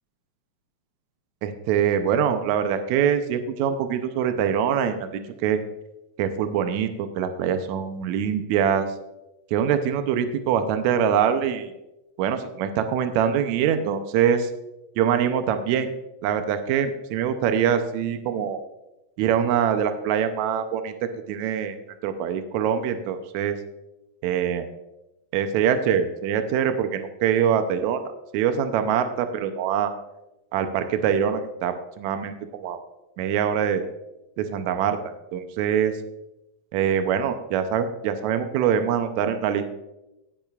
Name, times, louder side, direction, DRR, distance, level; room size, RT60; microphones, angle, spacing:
voice 1, 1.4-5.6 6.2-8.9 9.5-11.7 12.2-14.5 15.0-15.9 16.2-18.6 19.2-20.9 21.3-21.8 22.0-23.5 24.2-24.7 25.3-28.0 28.3-29.9 30.5-32.8 33.2-33.8 34.4-35.0 35.3-35.9 36.7-39.7, right 8 dB, 90° right, 8 dB, 1.6 m, -24 dB
16.5 x 8.9 x 2.4 m, 0.94 s
omnidirectional pair, 4.1 m